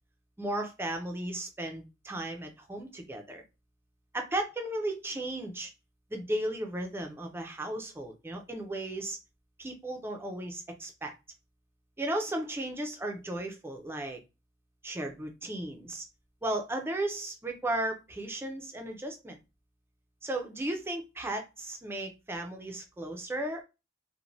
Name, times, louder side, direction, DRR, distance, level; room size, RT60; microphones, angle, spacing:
voice 1, 0.4-3.4 4.1-5.7 6.1-9.2 9.6-11.1 12.0-14.2 14.8-16.0 16.4-19.4 20.2-23.6, right 1 dB, 10° right, 3 dB, 0.4 m, -35 dB
2.5 x 2.1 x 3.1 m, 0.27 s
head